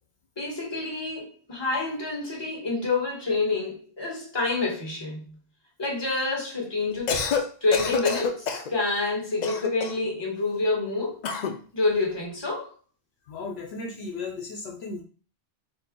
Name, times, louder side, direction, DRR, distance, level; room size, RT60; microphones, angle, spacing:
voice 1, 0.4-5.3 5.8-11.2 11.7-12.7, left 3 dB, 25° left, -2 dB, 1.2 m, -28 dB
Cough, 6.9-7.5 7.7-8.7 9.4-10.1 11.2-11.6, left 5 dB, 55° left, 0.5 m, -27 dB
voice 2, 13.2-15.0, left 3 dB, 70° left, 1 dB, 0.9 m, -35 dB
4.1 x 2.1 x 3.6 m, 0.39 s
omnidirectional pair, 1.1 m